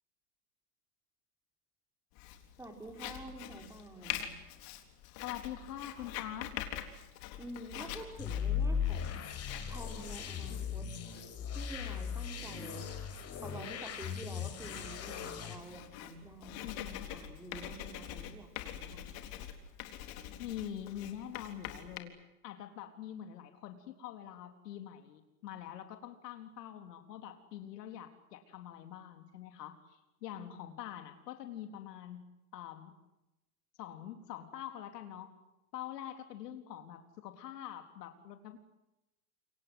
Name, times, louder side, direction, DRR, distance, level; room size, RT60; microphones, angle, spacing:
Writing, 2.2-22.0, left 11 dB, 50° left, 3.8 m, -46 dB
voice 1, 2.6-4.3 7.4-9.2 9.7-10.8 11.5-12.9 13.4-19.2 30.3-30.7, right 1 dB, 5° right, 4 dB, 5.5 m, -48 dB
voice 2, 5.2-6.6 16.6-17.1 20.4-22.1 22.4-32.3 32.5-32.9 33.8-35.3 35.7-38.6, left 11 dB, 80° left, 7 dB, 3.9 m, -45 dB
sound 1, 8.2-15.6, left 7 dB, 30° left, 5.4 m, -37 dB
28.5 x 24.0 x 7.9 m, 0.94 s
supercardioid pair, 135°, 47 cm